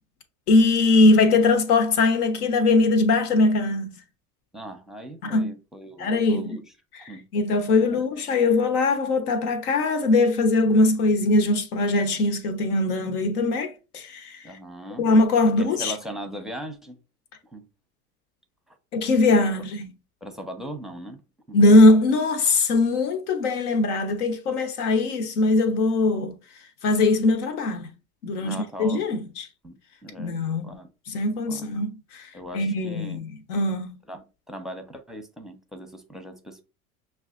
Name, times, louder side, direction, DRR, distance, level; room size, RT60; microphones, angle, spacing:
voice 1, 0.5-4.0 5.2-5.5 6.0-6.6 6.9-7.0 7.3-14.5 15.0-15.9 18.9-19.9 21.5-26.4 26.8-27.9 28.2-29.5 30.2-30.8 31.1-34.0, left 2 dB, 80° left, 1.0 m, -21 dB
voice 2, 4.5-6.6 7.1-7.2 7.9-8.1 14.4-15.1 15.6-17.0 17.5-17.7 20.2-21.2 21.5-21.6 28.4-29.0 29.6-30.3 30.6-30.9 31.5-31.7 32.3-33.2 34.1-36.6, equal, ahead, 0.6 m, -39 dB
6.2 x 2.3 x 2.4 m
hypercardioid pair, 90°, 45 cm